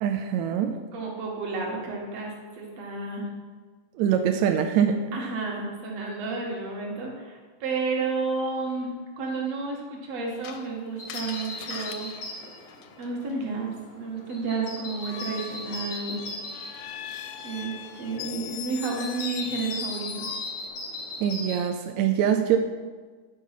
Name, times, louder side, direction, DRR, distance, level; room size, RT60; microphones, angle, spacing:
voice 1, 0.0-0.8 4.0-5.1 21.2-22.6, right 9 dB, 85° right, 5 dB, 1.6 m, -24 dB
voice 2, 0.9-3.3 5.1-12.1 13.0-16.3 17.4-20.3, right 4 dB, 55° right, -1 dB, 2.4 m, -31 dB
Screech, 10.4-13.3 15.0-20.7, left 10 dB, 80° left, 1.9 m, -40 dB
sound 1, 11.0-21.6, left 1 dB, 60° left, 0.6 m, -39 dB
9.2 x 4.6 x 5.7 m, 1.4 s
omnidirectional pair, 3.8 m